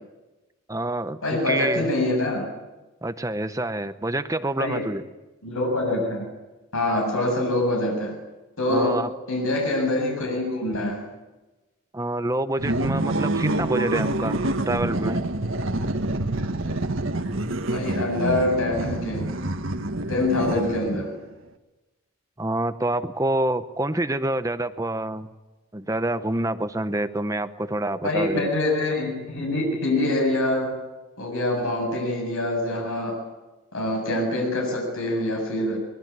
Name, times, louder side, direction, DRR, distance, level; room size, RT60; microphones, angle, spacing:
voice 1, 0.7-1.9 3.0-5.0 8.7-9.1 11.9-15.2 20.4-21.0 22.4-25.3 25.7-28.5, right 1 dB, 15° right, 11 dB, 0.8 m, -27 dB
voice 2, 1.2-2.5 4.6-4.9 5.4-6.3 6.7-8.2 8.6-11.0 17.7-19.3 20.1-21.1 28.0-30.8 31.2-33.2 33.7-35.8, left 1 dB, 80° left, 0 dB, 8.0 m, -25 dB
sound 1, 12.6-21.1, right 1 dB, 65° right, 1.7 m, -27 dB
24.0 x 22.0 x 9.7 m, 1.1 s
head